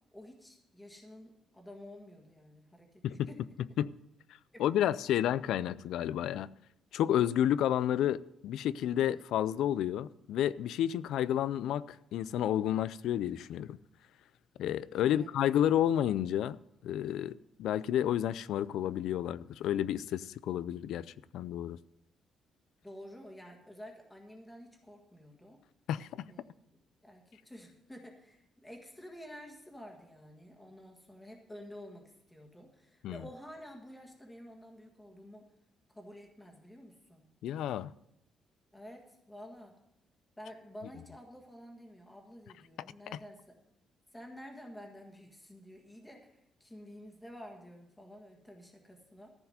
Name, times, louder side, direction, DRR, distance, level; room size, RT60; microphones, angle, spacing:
voice 1, 0.1-3.4 4.5-4.9 15.0-15.3 22.8-25.6 26.3-26.8 27.0-35.5 35.9-37.2 38.7-39.7 40.4-43.5 44.1-49.3, equal, 5° left, 2 dB, 1.7 m, -50 dB
voice 2, 4.6-6.5 6.9-13.8 14.6-16.6 16.8-21.0 21.3-21.8 25.9-26.3 33.0-33.2 37.4-37.9, left 11 dB, 80° left, 18 dB, 0.4 m, -30 dB
14.5 x 4.8 x 9.1 m, 0.82 s
cardioid pair, 175°, 0 cm